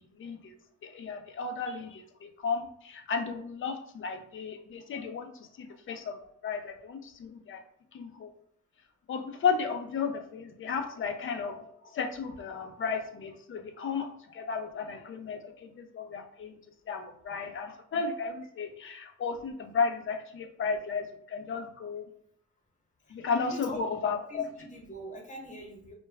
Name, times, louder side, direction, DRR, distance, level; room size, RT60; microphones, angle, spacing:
voice 1, 0.2-0.5 0.8-5.3 5.6-7.6 7.9-8.3 9.1-16.6 16.9-22.0 23.1-24.5, left 5 dB, 45° left, 6 dB, 0.5 m, -34 dB
voice 2, 23.5-23.8 24.3-25.9, equal, 25° left, -1 dB, 1.0 m, -43 dB
2.3 x 2.1 x 3.3 m, 0.67 s
cardioid pair, 90°, 30 cm